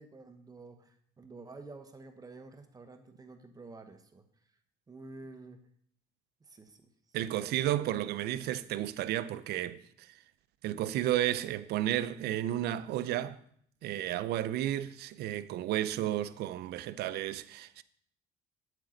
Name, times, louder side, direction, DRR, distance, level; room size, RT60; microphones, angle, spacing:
voice 1, 0.0-4.2 4.9-5.6 6.4-6.9, right 3 dB, 20° right, 1.1 m, -50 dB
voice 2, 7.1-10.2 10.6-13.4 13.8-17.8, right 13 dB, 75° right, 0.5 m, -32 dB
8.9 x 7.5 x 3.9 m
cardioid pair, 110°, 17 cm